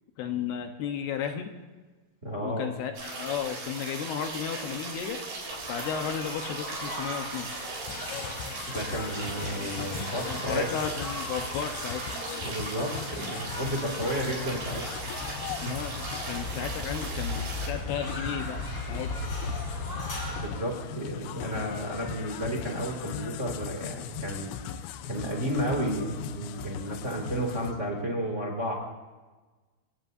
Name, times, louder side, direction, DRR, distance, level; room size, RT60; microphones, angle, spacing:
voice 1, 0.2-1.5 2.4-5.2 5.7-7.6 10.2-12.0 15.6-18.6 18.9-19.2, left 8 dB, 75° left, 5 dB, 2.9 m, -34 dB
voice 2, 2.2-2.7 8.7-10.6 12.4-14.8 15.6-15.7 20.4-24.5 25.0-28.7, equal, 20° right, -1 dB, 2.1 m, -32 dB
sound 1, 3.0-17.7, right 3 dB, 80° right, 6.5 m, -38 dB
sound 2, 5.4-20.5, left 2 dB, 25° left, 4.0 m, -38 dB
sound 3, 7.9-27.7, left 9 dB, 90° left, 3.1 m, -40 dB
28.0 x 17.5 x 2.7 m, 1.3 s
omnidirectional pair, 5.0 m